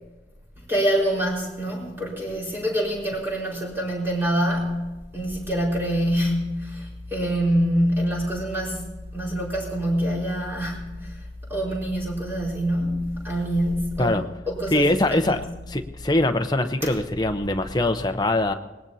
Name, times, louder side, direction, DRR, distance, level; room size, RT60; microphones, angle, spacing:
voice 1, 0.7-4.9 5.1-11.2 11.5-15.4 16.8-16.9, equal, 10° right, -4 dB, 4.7 m, -25 dB
voice 2, 14.7-15.4 15.7-18.5, left 1 dB, 20° left, 6 dB, 0.8 m, -22 dB
24.5 x 19.5 x 2.8 m, 1.1 s
head